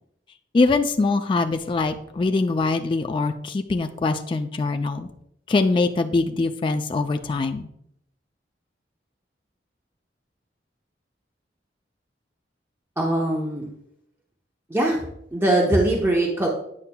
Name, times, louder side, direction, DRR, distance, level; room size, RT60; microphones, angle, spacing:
voice 1, 0.5-5.1 5.5-7.7, left 3 dB, 30° left, 6 dB, 0.3 m, -23 dB
voice 2, 13.0-13.7 14.7-15.0 15.3-16.5, right 1 dB, 15° right, -1 dB, 0.7 m, -21 dB
8.4 x 5.6 x 2.2 m, 0.76 s
head